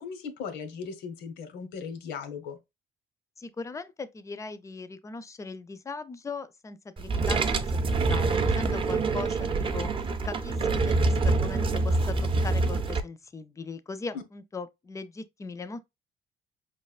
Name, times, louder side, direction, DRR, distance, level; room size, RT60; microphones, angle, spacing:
voice 1, 0.0-2.6 14.1-14.2, left 6 dB, 90° left, 1.0 m, -38 dB
voice 2, 3.4-15.8, left 4 dB, 20° left, 0.5 m, -39 dB
sound 1, 7.0-13.0, right 3 dB, 30° right, 0.6 m, -26 dB
4.8 x 3.2 x 2.4 m
cardioid pair, 110°, 17 cm